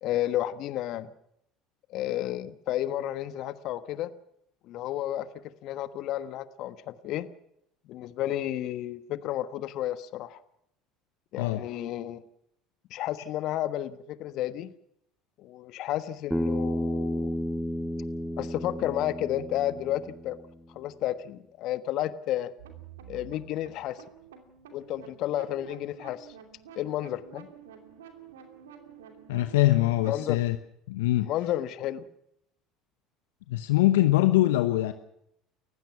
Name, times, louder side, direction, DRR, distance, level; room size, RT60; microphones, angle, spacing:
voice 1, 0.0-1.1 1.9-4.1 4.6-7.3 7.9-10.4 11.3-12.2 12.9-14.7 15.4-17.4 18.4-20.4 20.7-22.5 23.1-24.0 24.7-26.3 26.7-27.5 30.1-30.4 31.2-32.1, left 13 dB, 55° left, 1.3 m, -32 dB
voice 2, 11.4-11.7 29.3-30.6 30.9-31.3 33.5-34.9, left 16 dB, 75° left, 0.9 m, -23 dB
Bass guitar, 16.3-20.6, equal, ahead, 1.8 m, -32 dB
sound 1, 22.6-30.4, right 8 dB, 80° right, 2.7 m, -49 dB
29.5 x 15.5 x 6.0 m
hypercardioid pair, 65°, 0 cm